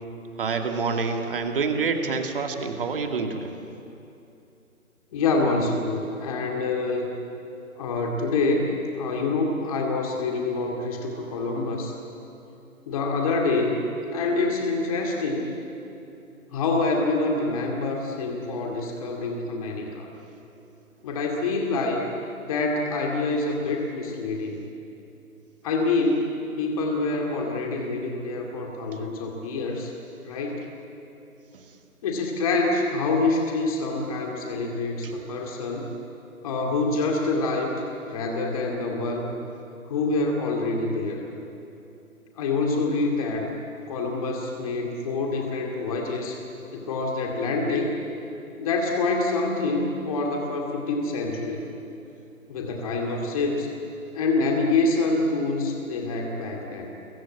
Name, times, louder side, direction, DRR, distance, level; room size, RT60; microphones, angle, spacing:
voice 1, 0.4-3.5 31.5-31.7 35.0-35.1, right 4 dB, 35° right, 5 dB, 2.3 m, -27 dB
voice 2, 5.1-7.1 7.8-11.9 12.9-13.9 14.1-15.5 16.5-20.1 21.0-22.0 22.4-24.6 25.6-29.9 30.2-30.7 32.0-35.9 36.4-37.7 38.0-39.4 39.9-41.3 42.4-43.5 43.9-46.4 46.7-47.9 48.6-51.6 52.5-53.7 54.1-56.9, left 3 dB, 25° left, 1 dB, 2.4 m, -26 dB
27.5 x 22.5 x 8.6 m, 2.8 s
figure-of-eight pair, 155°, 44 cm